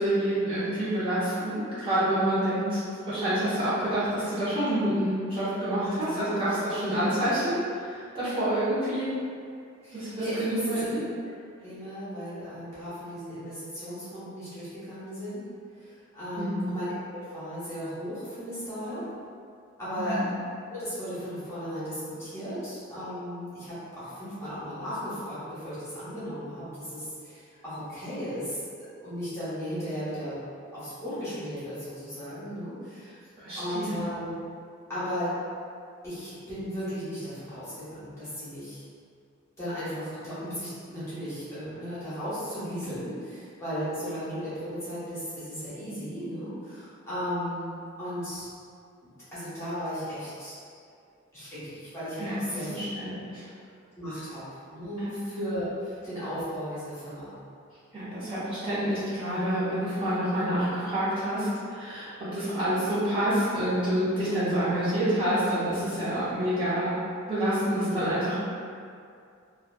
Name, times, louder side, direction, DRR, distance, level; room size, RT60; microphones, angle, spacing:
voice 1, 0.0-2.8 3.1-9.2 9.9-11.0 16.4-16.6 20.0-20.2 33.4-34.0 52.2-52.4 52.7-53.4 55.0-55.1 57.9-66.9 67.3-68.3, right 1 dB, 25° right, -14 dB, 0.8 m, -28 dB
voice 2, 5.8-6.6 9.8-11.0 11.6-15.4 15.7-19.0 19.8-20.2 20.7-28.6 29.0-30.4 30.7-33.2 33.5-34.3 34.9-35.3 36.0-38.8 39.6-47.7 48.0-48.5 49.3-50.5 51.3-52.7 53.9-54.4 54.7-57.4 67.8-68.0, equal, 15° left, -14 dB, 1.1 m, -35 dB
3.0 x 2.3 x 2.2 m, 2.3 s
head